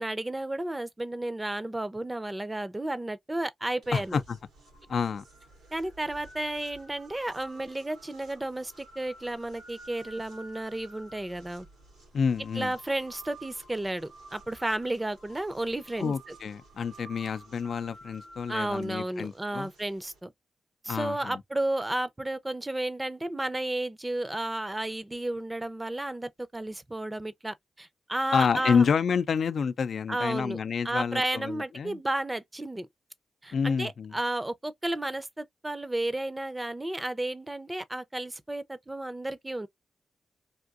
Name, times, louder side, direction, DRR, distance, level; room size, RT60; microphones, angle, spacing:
voice 1, 0.0-4.2 5.7-11.7 12.5-16.3 18.5-20.3 20.8-28.8 30.1-30.6 30.8-32.9 33.4-39.7, right 1 dB, 20° right, 0.6 m, -32 dB
sound 1, 3.8-20.2, right 2 dB, 90° right, 2.1 m, -52 dB
voice 2, 3.9-4.4 4.9-5.2 12.1-12.7 16.0-19.7 20.9-21.4 28.3-32.0 33.5-34.1, left 6 dB, 70° left, 0.4 m, -28 dB
3.6 x 2.5 x 2.4 m
cardioid pair, 50°, 0 cm